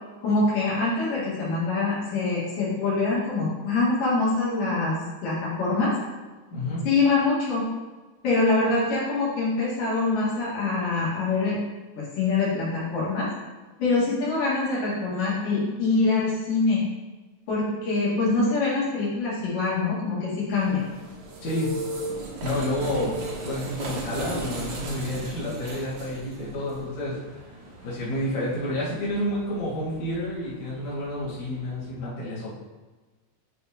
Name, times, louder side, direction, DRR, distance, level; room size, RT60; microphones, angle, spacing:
voice 1, 0.2-5.9 6.8-7.7 8.2-11.6 12.0-13.3 13.8-16.8 17.5-20.8, left 3 dB, 80° left, -8 dB, 3.3 m, -24 dB
voice 2, 6.5-6.8 21.4-21.8 22.4-23.1 23.4-27.4 27.8-32.5, left 1 dB, 60° left, -8 dB, 2.8 m, -29 dB
sound 1, 20.5-31.9, right 2 dB, 90° right, 1.0 m, -37 dB
8.9 x 4.1 x 2.8 m, 1.3 s
omnidirectional pair, 3.8 m